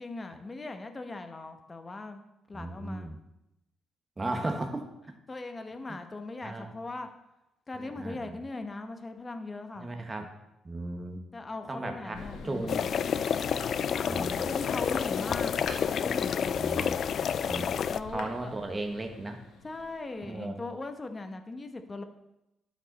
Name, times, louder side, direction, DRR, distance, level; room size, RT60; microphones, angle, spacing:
voice 1, 0.0-2.2 2.5-3.1 5.3-7.1 7.7-9.9 11.3-12.9 13.9-16.6 17.9-18.6 19.6-22.0, left 2 dB, 25° left, 7 dB, 1.0 m, -39 dB
voice 2, 2.5-3.2 4.2-4.9 6.4-6.7 7.7-8.3 9.8-10.3 10.6-11.2 11.7-12.9 14.1-14.4 16.6-17.0 17.4-17.7 18.1-19.4 20.3-20.6, right 2 dB, 25° right, 5 dB, 1.4 m, -36 dB
Thunder, 12.1-20.5, left 5 dB, 80° left, 1.4 m, -46 dB
sound 1, 12.7-18.0, left 8 dB, 60° left, 0.3 m, -29 dB
12.0 x 5.3 x 4.2 m, 0.89 s
cardioid pair, 90°, 0 cm